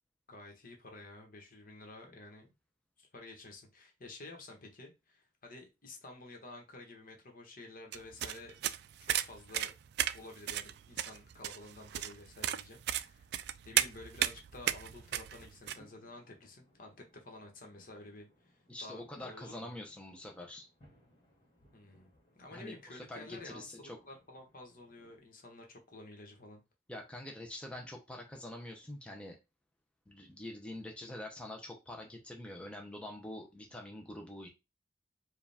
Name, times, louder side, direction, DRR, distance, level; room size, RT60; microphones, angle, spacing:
voice 1, 0.3-2.5 3.0-8.7 9.0-9.7 10.1-13.3 13.6-19.7 21.7-22.1 22.3-26.6, left 2 dB, 50° left, 1.2 m, -51 dB
sound 1, 7.9-15.8, right 12 dB, 65° right, 0.3 m, -35 dB
sound 2, 13.7-25.2, equal, 35° left, 1.7 m, -67 dB
voice 2, 18.7-20.7 22.5-24.0 26.9-29.4 30.1-34.5, left 1 dB, 5° left, 0.6 m, -45 dB
4.8 x 2.4 x 3.4 m
head